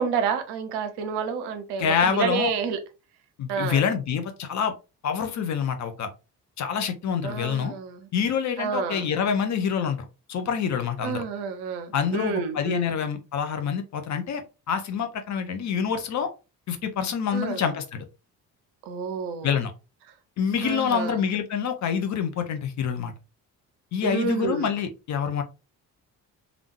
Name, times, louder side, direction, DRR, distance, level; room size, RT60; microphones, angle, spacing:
voice 1, 0.0-2.8 3.5-3.8 7.2-8.1 8.6-9.1 11.0-12.9 17.3-17.6 18.9-19.6 20.6-21.3 24.0-24.7, right 6 dB, 55° right, 0.7 m, -29 dB
voice 2, 1.8-2.5 3.4-4.7 5.0-6.1 6.6-7.7 8.1-11.2 11.9-16.3 16.7-18.0 19.4-19.7 20.4-23.1 23.9-25.4, left 7 dB, 35° left, 0.6 m, -26 dB
3.4 x 2.3 x 3.0 m
figure-of-eight pair, 45°, 49 cm